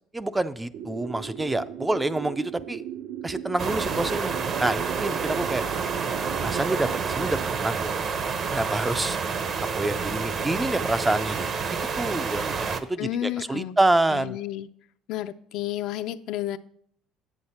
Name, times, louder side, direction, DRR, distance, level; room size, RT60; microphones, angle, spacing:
voice 1, 0.1-2.8 3.2-4.3 4.6-5.6 6.4-7.9 8.5-9.2 9.6-11.5 12.0-14.4, right 2 dB, 10° right, 13 dB, 0.3 m, -27 dB
sound 1, 0.7-7.5, right 10 dB, 75° right, 0.6 m, -37 dB
sound 2, 3.6-12.8, right 5 dB, 40° right, 0.7 m, -29 dB
voice 2, 13.0-13.8 14.1-14.7 15.1-16.6, left 13 dB, 70° left, 11 dB, 0.4 m, -31 dB
8.1 x 7.8 x 4.2 m, 0.64 s
cardioid pair, 130°, 0 cm